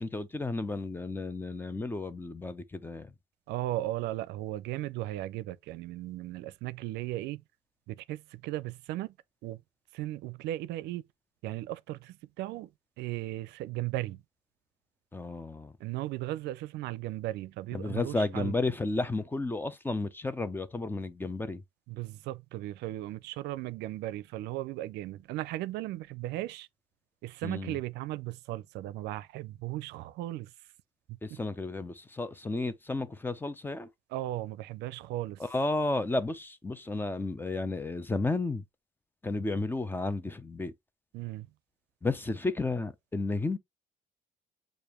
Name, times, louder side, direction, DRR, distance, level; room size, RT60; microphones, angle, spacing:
voice 1, 0.0-3.1 15.1-15.7 17.7-21.6 27.4-27.8 31.2-33.9 35.4-38.6 39.2-40.7 42.0-43.6, left 2 dB, 10° left, 0.6 m, -32 dB
voice 2, 3.5-7.4 7.9-9.1 9.4-9.6 9.9-11.0 11.4-12.7 13.0-14.2 15.8-18.5 21.9-26.7 27.2-30.5 31.3-31.4 34.1-35.4 41.1-41.5, right 15 dB, 85° right, 0.5 m, -36 dB
6.8 x 2.5 x 3.0 m
cardioid pair, 110°, 17 cm